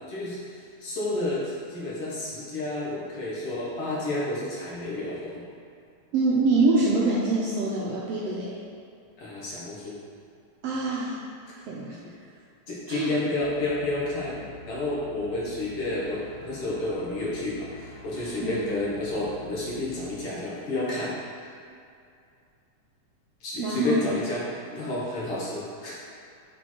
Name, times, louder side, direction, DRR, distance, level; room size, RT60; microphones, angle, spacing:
voice 1, 0.0-5.4 9.2-10.0 12.7-21.1 21.4-21.5 23.4-24.4 24.7-26.0, left 2 dB, 55° left, -6 dB, 1.9 m, -30 dB
voice 2, 6.1-8.6 10.6-11.2 11.7-12.0 12.9-13.1 18.4-18.7 23.6-24.1, right 3 dB, 75° right, -6 dB, 1.4 m, -25 dB
sound 1, 13.4-20.3, left 4 dB, 85° left, 2.2 m, -47 dB
6.3 x 4.4 x 4.4 m, 2.4 s
omnidirectional pair, 3.6 m